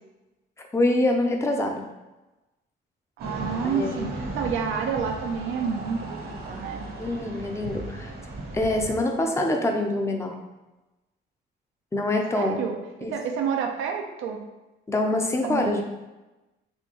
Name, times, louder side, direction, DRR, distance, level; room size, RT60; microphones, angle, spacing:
voice 1, 0.7-1.8 3.6-4.1 7.0-8.1 8.5-10.4 11.9-12.6 13.0-13.1 14.9-15.8, left 1 dB, 15° left, 2 dB, 0.5 m, -25 dB
sound 1, 3.2-8.9, right 2 dB, 50° right, 0.8 m, -36 dB
voice 2, 3.2-6.8 12.3-14.4 15.4-15.8, right 6 dB, 85° right, 2 dB, 0.5 m, -29 dB
4.2 x 2.3 x 2.9 m, 1.0 s
cardioid pair, 90°, 20 cm